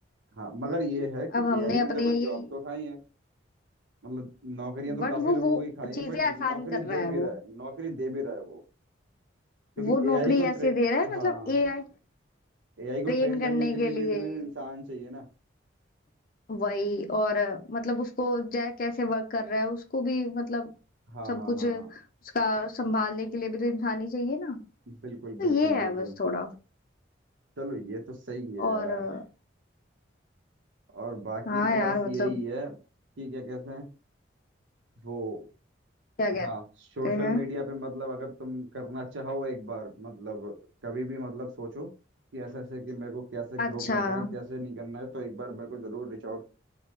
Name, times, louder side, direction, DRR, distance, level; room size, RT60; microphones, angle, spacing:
voice 1, 0.4-3.0 4.0-8.6 9.8-10.7 11.0-11.6 12.8-15.3 21.1-21.9 24.9-26.2 27.6-29.0 30.9-32.7 33.2-33.9 35.0-35.4 36.4-36.6 36.9-40.6 40.8-41.9 42.3-46.4, right 1 dB, 75° right, 0.7 m, -35 dB
voice 2, 1.3-2.4 4.9-5.6 5.9-7.3 9.8-11.8 13.1-14.5 16.5-20.7 21.3-22.0 22.3-24.6 25.4-26.5 28.6-29.2 31.5-32.3 36.2-36.5 37.0-37.4 43.6-44.3, left 2 dB, 45° left, 0.5 m, -28 dB
3.0 x 2.0 x 3.2 m
head